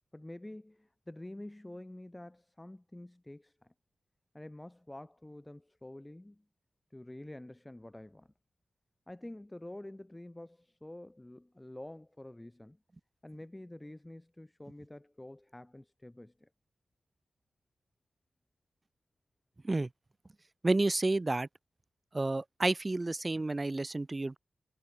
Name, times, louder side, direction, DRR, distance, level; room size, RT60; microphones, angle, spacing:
voice 1, 0.1-3.7 4.3-6.4 6.9-8.3 9.1-12.8 13.2-16.5, left 1 dB, 15° left, 5.2 m, -48 dB
voice 2, 20.6-21.5 22.1-24.4, right 2 dB, 30° right, 1.9 m, -30 dB
cardioid pair, 45°, 0 cm